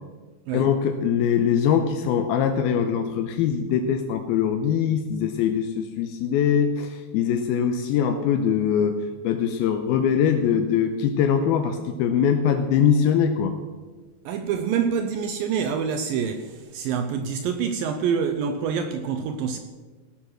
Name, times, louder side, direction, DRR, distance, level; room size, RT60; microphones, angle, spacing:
voice 1, 0.5-13.5, left 8 dB, 80° left, 2.4 m, -22 dB
voice 2, 14.3-19.6, right 6 dB, 80° right, 2.1 m, -26 dB
17.5 x 7.2 x 6.3 m
omnidirectional pair, 4.6 m